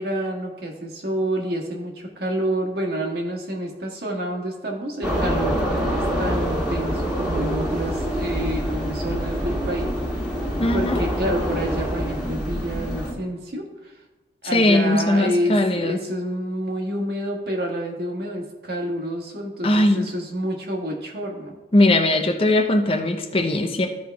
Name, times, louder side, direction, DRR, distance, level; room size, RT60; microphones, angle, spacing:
voice 1, 0.0-9.9 10.2-10.4 10.7-14.0 14.4-21.6, right 1 dB, 60° right, 0 dB, 1.6 m, -28 dB
sound 1, 5.0-13.1, equal, 5° right, 1.7 m, -25 dB
voice 2, 10.6-11.0 14.5-16.0 19.6-20.1 21.7-23.9, left 1 dB, 30° left, 5 dB, 0.7 m, -19 dB
13.5 x 5.0 x 3.4 m, 1.2 s
head